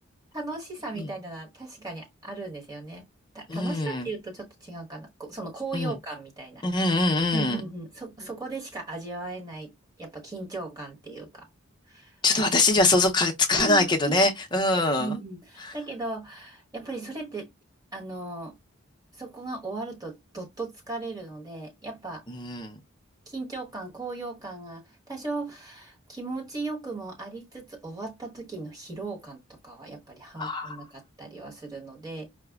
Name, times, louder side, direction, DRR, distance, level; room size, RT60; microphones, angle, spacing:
voice 1, 0.3-3.0 3.3-6.8 7.3-9.7 10.0-11.5 11.9-12.1 13.5-14.3 15.0-17.5 17.9-18.5 19.1-22.2 23.3-32.3, right 3 dB, 20° right, 1.1 m, -37 dB
voice 2, 3.5-4.1 5.7-5.9 6.6-7.6 12.2-15.2 15.6-15.7 22.3-22.8 30.4-30.8, left 2 dB, 20° left, 0.5 m, -23 dB
4.8 x 2.0 x 2.3 m
head